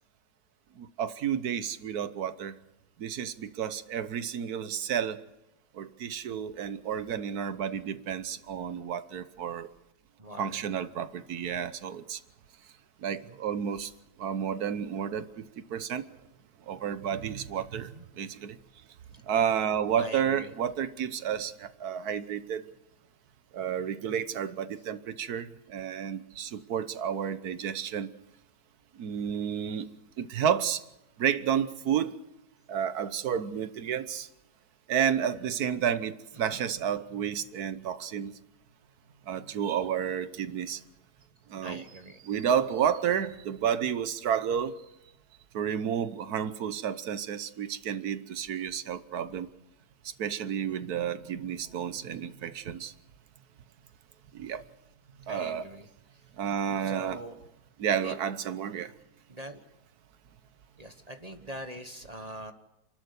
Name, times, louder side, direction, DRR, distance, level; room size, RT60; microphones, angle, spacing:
voice 1, 0.8-2.5 3.0-5.2 5.8-9.7 10.4-12.2 13.0-13.9 14.2-15.4 15.7-16.0 16.7-18.6 19.3-22.6 23.5-28.1 29.0-29.9 30.2-30.8 31.2-32.2 32.7-34.3 34.9-38.3 39.3-40.8 41.5-41.8 42.2-44.7 45.5-49.5 50.2-52.9 54.3-54.6 55.3-55.6 56.4-57.2 57.8-58.9, right 8 dB, 70° right, 13 dB, 1.5 m, -31 dB
voice 2, 10.2-10.6 13.2-13.4 17.7-18.0 19.1-19.2 20.0-20.5 36.4-36.6 41.6-42.2 55.3-55.9 56.8-57.4 58.0-58.2 59.3-59.6 60.8-62.5, equal, 25° right, 7 dB, 1.2 m, -42 dB
28.5 x 12.5 x 8.2 m, 0.91 s
omnidirectional pair, 1.7 m